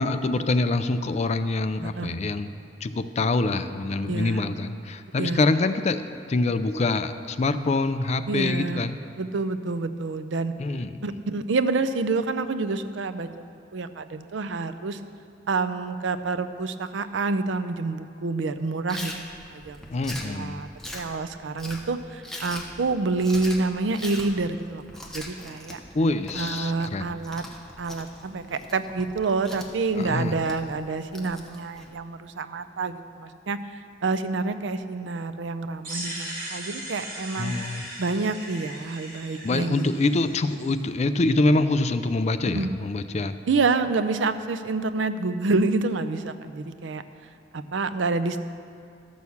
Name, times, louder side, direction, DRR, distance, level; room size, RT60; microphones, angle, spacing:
voice 1, 0.0-2.5 2.8-6.0 6.3-9.0 10.6-11.1 19.9-20.6 25.9-27.1 30.0-30.3 37.4-37.8 39.4-43.3, left 2 dB, 35° left, 10 dB, 0.4 m, -25 dB
voice 2, 1.8-2.3 4.0-4.4 5.2-5.4 8.3-8.8 9.2-10.5 11.0-13.3 13.7-15.0 15.5-19.1 19.5-19.8 20.2-20.7 20.9-24.8 25.1-25.8 26.3-27.4 27.8-33.6 34.0-37.5 38.0-40.0 42.5-42.7 43.5-47.0 47.5-48.4, right 3 dB, 80° right, 11 dB, 0.5 m, -28 dB
Chewing mastication, 18.9-31.9, left 1 dB, 5° left, 0.9 m, -41 dB
sound 1, 35.8-40.7, right 1 dB, 50° right, 2.9 m, -38 dB
12.5 x 6.3 x 7.1 m, 2.5 s
head